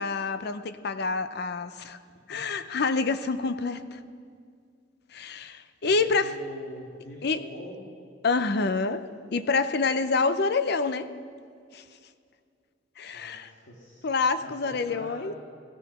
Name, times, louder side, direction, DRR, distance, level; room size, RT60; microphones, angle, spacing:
voice 1, 0.0-2.0 2.3-4.0 5.1-6.3 7.2-7.4 8.2-9.0 9.3-11.1 11.7-11.8 13.0-13.5 14.0-15.3, left 4 dB, 60° left, 12 dB, 0.6 m, -27 dB
voice 2, 5.8-7.8 13.1-14.0 14.4-15.3, left 1 dB, 80° left, -2 dB, 2.1 m, -44 dB
16.5 x 13.0 x 6.1 m, 2.2 s
head